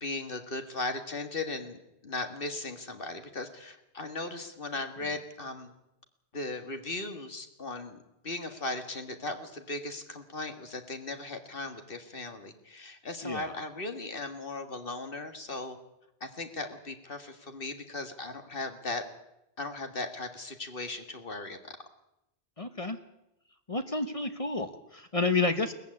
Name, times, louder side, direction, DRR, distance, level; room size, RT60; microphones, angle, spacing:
voice 1, 0.0-5.7 6.3-8.0 8.2-15.8 16.2-19.0 19.6-21.6, left 2 dB, 60° left, 7 dB, 2.0 m, -37 dB
voice 2, 22.6-23.0 23.7-25.7, left 3 dB, 35° left, 8 dB, 1.2 m, -30 dB
19.0 x 15.0 x 9.7 m, 0.86 s
omnidirectional pair, 1.1 m